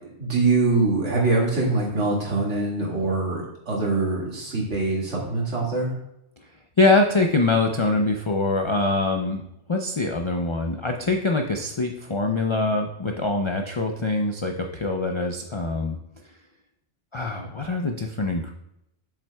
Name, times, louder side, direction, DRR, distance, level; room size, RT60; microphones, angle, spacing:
voice 1, 0.2-5.9, right 3 dB, 70° right, -4 dB, 2.3 m, -23 dB
voice 2, 6.8-9.4 9.7-16.0 17.1-18.5, left 2 dB, 50° left, 3 dB, 0.3 m, -24 dB
7.5 x 7.3 x 2.3 m, 0.83 s
omnidirectional pair, 1.2 m